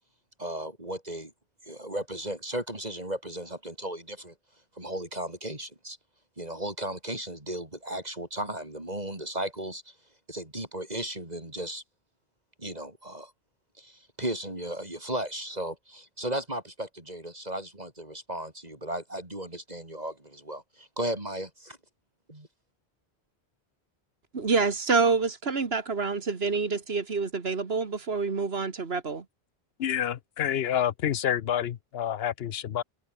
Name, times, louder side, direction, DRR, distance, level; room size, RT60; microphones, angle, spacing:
voice 1, 0.4-1.3 1.7-4.3 4.8-6.0 6.4-9.9 10.3-11.8 12.6-13.3 13.8-21.8 22.3-22.5, right 1 dB, 40° right, 4.8 m, -35 dB
voice 2, 24.3-29.2, right 4 dB, 65° right, 1.9 m, -27 dB
voice 3, 29.8-32.8, left 10 dB, 70° left, 0.9 m, -28 dB
open air
omnidirectional pair, 1.1 m